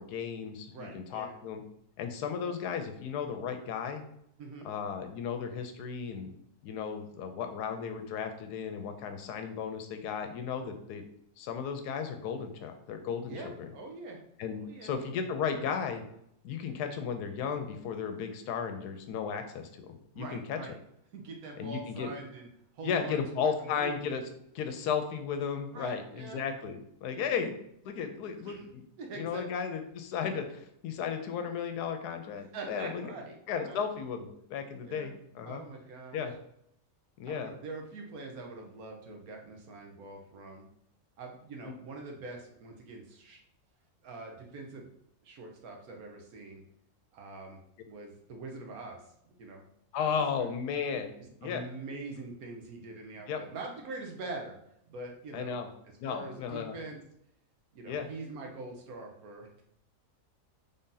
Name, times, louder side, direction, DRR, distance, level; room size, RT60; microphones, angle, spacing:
voice 1, 0.0-1.6 2.0-4.0 4.6-6.3 6.6-11.0 11.4-13.7 14.4-16.0 16.4-19.9 20.2-20.6 21.6-22.1 22.8-24.2 24.5-27.5 27.8-28.8 29.2-33.1 33.5-35.6 36.1-36.3 37.2-37.5 41.6-41.7 49.9-51.1 51.4-51.6 53.3-53.4 55.3-55.7 56.0-56.7 57.9-58.1, left 6 dB, 80° left, 6 dB, 1.1 m, -34 dB
voice 2, 0.7-1.4 4.4-4.7 13.3-14.2 14.5-14.9 20.1-20.7 21.1-22.5 22.7-24.0 25.7-26.4 27.1-27.4 28.4-28.7 29.0-29.4 32.4-33.8 34.8-35.1 35.4-36.2 37.2-40.6 41.2-43.4 44.0-44.9 45.2-46.6 47.1-47.6 47.9-49.6 50.0-50.5 51.4-54.6 54.9-55.6 55.9-57.0 57.7-59.6, right 3 dB, 70° right, 2 dB, 1.2 m, -44 dB
3.7 x 2.7 x 3.7 m, 0.74 s
omnidirectional pair, 1.7 m